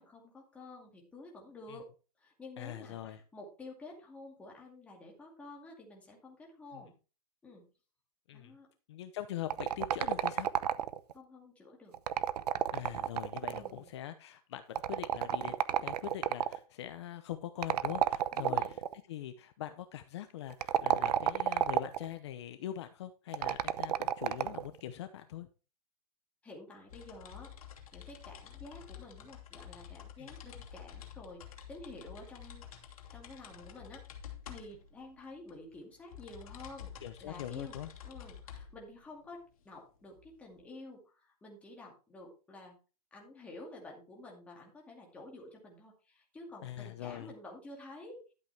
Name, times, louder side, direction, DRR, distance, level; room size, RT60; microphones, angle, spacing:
voice 1, 0.0-1.9 2.2-6.9 7.4-7.6 8.3-8.7 11.1-12.0 13.5-13.9 18.3-18.8 26.4-27.5 27.9-32.9 33.1-42.8 43.1-48.3, left 2 dB, 5° left, -1 dB, 2.3 m, -50 dB
voice 2, 2.6-3.2 6.7-6.8 8.3-8.5 8.9-10.5 12.7-18.8 19.1-25.5 30.2-30.3 37.0-37.9 46.6-47.3, left 11 dB, 45° left, 9 dB, 0.8 m, -42 dB
sound 1, 9.5-11.1 11.9-13.8 14.7-16.6 17.6-18.9 20.5-22.1 23.3-24.7, right 10 dB, 80° right, 0.8 m, -31 dB
sound 2, 26.9-40.6, left 9 dB, 60° left, 2.8 m, -50 dB
12.0 x 8.1 x 3.4 m, 0.33 s
supercardioid pair, 175°, 20 cm